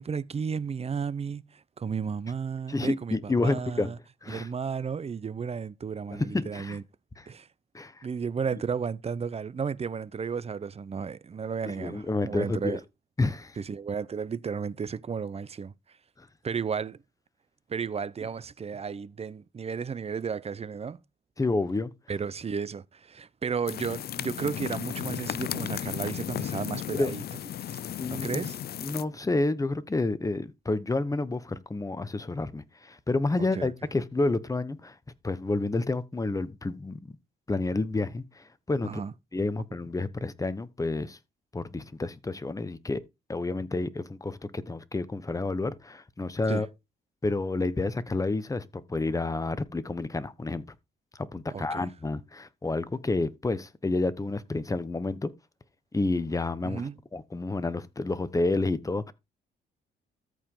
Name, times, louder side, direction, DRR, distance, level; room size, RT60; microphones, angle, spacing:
voice 1, 0.0-4.0 4.3-6.8 7.3-7.5 8.0-12.8 13.6-15.7 16.4-17.0 17.7-21.0 22.1-27.2 27.7-27.8 28.1-28.6 33.5-33.7 38.8-39.1 46.5-46.6 51.5-51.9 56.6-57.0, right 6 dB, 30° right, 0.7 m, -33 dB
voice 2, 2.7-3.9 4.2-4.5 6.1-6.8 7.7-7.9 11.8-12.8 13.2-13.6 16.2-16.3 21.4-21.9 26.9-27.1 28.0-28.5 28.8-34.9 35.2-37.2 37.5-38.9 39.3-41.2 41.5-43.0 43.3-46.7 47.2-50.6 51.3-55.3 55.9-56.8 57.1-59.1, left 2 dB, 15° left, 1.1 m, -29 dB
sound 1, 23.7-29.0, left 10 dB, 55° left, 0.5 m, -35 dB
13.5 x 4.9 x 3.8 m
cardioid pair, 90°, 20 cm